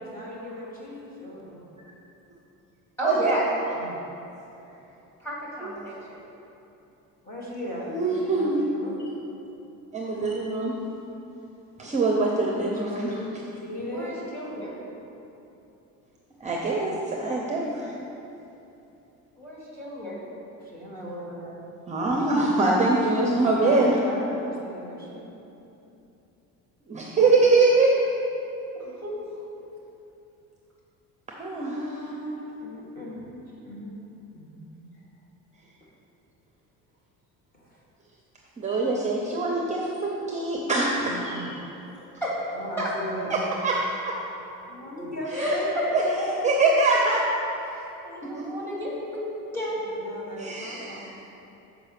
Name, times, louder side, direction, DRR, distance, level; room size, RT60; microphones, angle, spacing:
voice 1, 0.0-1.7 3.7-4.0 7.2-9.2 12.6-14.2 20.6-21.6 23.3-25.3 31.6-34.0 34.3-34.9 37.5-37.8 38.7-38.9 41.0-41.5 42.5-43.6 44.7-45.6 45.9-46.6 49.7-51.1, equal, 25° left, -5 dB, 1.4 m, -37 dB
voice 2, 3.0-3.4 5.2-6.2 13.8-14.7 19.4-20.2 28.8-29.4 42.2-42.3 42.8-42.9 45.3-45.8 46.5-46.6 47.6-49.2 49.5-50.4, equal, 5° left, -6 dB, 2.0 m, -32 dB
voice 3, 7.9-8.6 9.9-10.8 11.8-13.1 16.4-17.9 21.9-24.0 26.9-27.9 31.4-31.8 38.6-41.5 43.3-43.4 43.6-43.7 44.0-44.1 45.4-45.6 45.9-46.0 46.4-47.2 48.3-48.4 50.4-51.2, right 3 dB, 20° right, -2 dB, 0.6 m, -23 dB
6.7 x 5.0 x 6.7 m, 2.9 s
cardioid pair, 160°, 33 cm